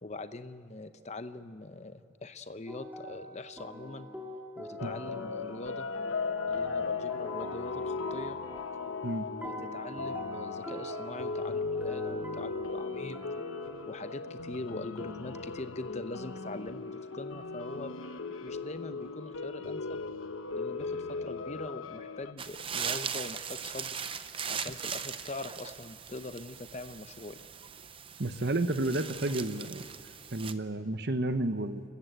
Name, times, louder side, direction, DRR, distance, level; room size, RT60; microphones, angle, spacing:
voice 1, 0.0-4.1 4.6-5.9 6.5-8.4 9.3-13.2 13.9-18.0 18.4-20.0 20.5-24.0 24.5-27.4, left 2 dB, 35° left, 11 dB, 0.7 m, -42 dB
sound 1, 2.7-5.6 6.1-9.0 9.4-14.3 15.0-15.4, equal, 10° right, 2.6 m, -45 dB
sound 2, 4.8-22.3, left 4 dB, 80° left, 0.9 m, -37 dB
sound 3, 22.4-30.5, right 7 dB, 25° right, 0.6 m, -39 dB
voice 2, 28.2-29.8 30.3-31.8, right 2 dB, 50° right, 10 dB, 1.0 m, -31 dB
29.0 x 14.5 x 8.1 m, 2.3 s
head